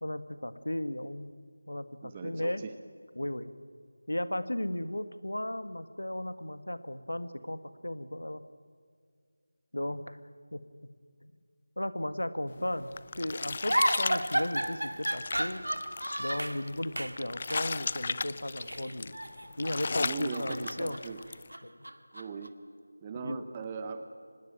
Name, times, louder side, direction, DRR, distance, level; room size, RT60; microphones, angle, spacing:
voice 1, 0.0-1.3 1.7-2.6 3.2-3.5 4.1-8.4 9.7-10.2 10.5-10.6 11.2-11.3 11.8-12.9 13.2-15.6 16.2-19.2 19.6-21.0 21.6-21.8 23.2-23.4, left 1 dB, 85° left, 12 dB, 1.6 m, -35 dB
voice 2, 2.0-2.7 20.0-21.2 22.1-22.5 23.0-24.1, right 5 dB, 20° right, 9 dB, 0.9 m, -39 dB
sound 1, 12.6-21.5, left 4 dB, 35° left, 0.6 m, -36 dB
sound 2, 13.7-16.6 17.0-17.2 17.5-17.7 18.6-19.8 20.1-22.5, right 1 dB, 90° right, 2.0 m, -33 dB
25.0 x 20.0 x 9.1 m, 2.2 s
figure-of-eight pair, 170°, 0 cm